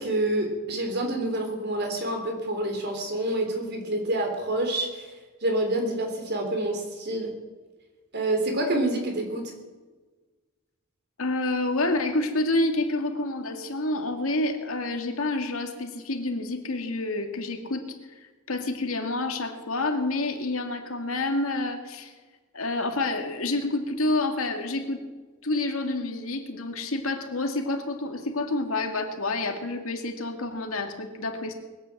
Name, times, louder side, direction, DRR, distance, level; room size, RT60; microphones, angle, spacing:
voice 1, 0.0-5.1 5.4-7.3 8.1-9.5, right 1 dB, 55° right, 3 dB, 3.6 m, -27 dB
voice 2, 11.2-17.8 18.5-22.1 22.5-25.0 25.4-31.5, left 2 dB, 85° left, 5 dB, 2.1 m, -28 dB
20.5 x 9.1 x 7.7 m, 1.3 s
head